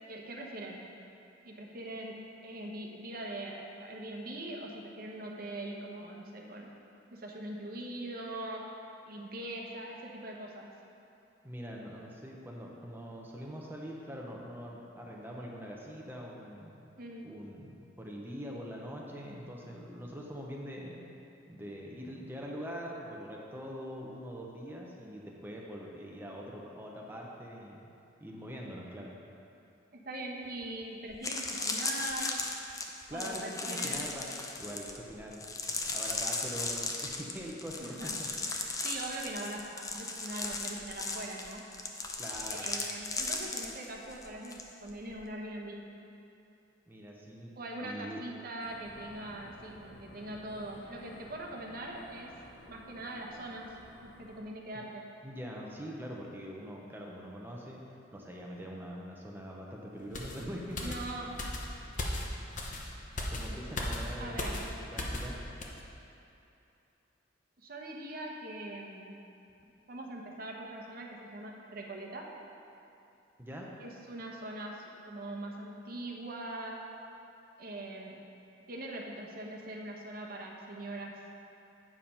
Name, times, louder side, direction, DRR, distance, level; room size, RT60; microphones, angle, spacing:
voice 1, 0.1-0.9 1.4-6.7 7.1-8.8 9.1-10.7 17.0-17.3 29.9-32.5 33.1-34.1 37.8-38.2 38.8-41.6 42.5-46.0 47.6-52.3 52.7-53.7 54.0-55.1 60.8-61.4 64.2-64.6 67.6-69.3 69.9-72.3 73.8-76.9 77.6-78.2 78.7-81.2, right 1 dB, 50° right, 0 dB, 1.0 m, -42 dB
voice 2, 11.4-16.8 17.2-21.0 21.5-27.9 28.2-29.1 33.1-34.3 34.6-38.6 42.2-42.7 46.9-47.5 47.8-48.2 55.2-57.8 58.1-61.2 63.3-65.4 73.4-73.7, equal, 10° right, -2 dB, 0.9 m, -43 dB
sound 1, 30.6-30.7 31.1-44.6 44.9-45.2, left 3 dB, 20° left, 0.5 m, -37 dB
sound 2, 48.6-54.4, equal, 75° left, 1.1 m, -53 dB
sound 3, 60.1-65.3 65.6-65.8, left 1 dB, 40° left, 0.8 m, -37 dB
8.7 x 5.0 x 5.5 m, 2.7 s
head